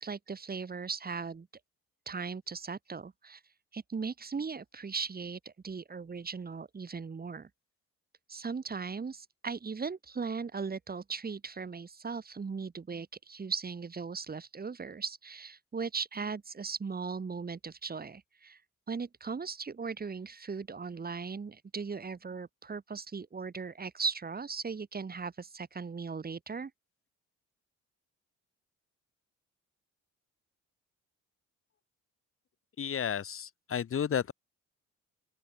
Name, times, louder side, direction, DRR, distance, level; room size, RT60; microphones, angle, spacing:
voice 1, 0.0-1.5 2.1-3.4 3.7-7.5 8.3-18.6 18.9-26.7, right 5 dB, 30° right, 2.3 m, -38 dB
voice 2, 32.8-34.3, left 8 dB, 45° left, 1.6 m, -32 dB
open air
cardioid pair, 90°, 30 cm